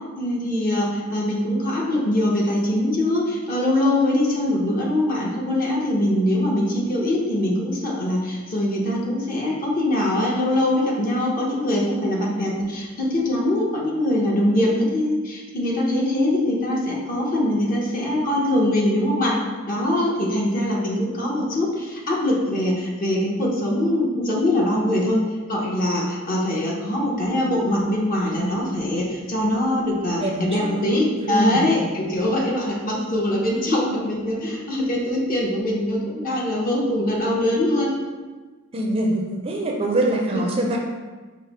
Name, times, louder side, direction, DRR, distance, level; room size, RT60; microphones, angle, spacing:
voice 1, 0.2-19.4 19.7-25.2 25.5-37.9 40.3-40.4, left 1 dB, 40° left, -3 dB, 0.8 m, -22 dB
voice 2, 30.7-31.9 32.9-33.0 38.7-40.8, right 1 dB, 30° right, 0 dB, 0.4 m, -24 dB
4.9 x 2.0 x 4.1 m, 1.3 s
head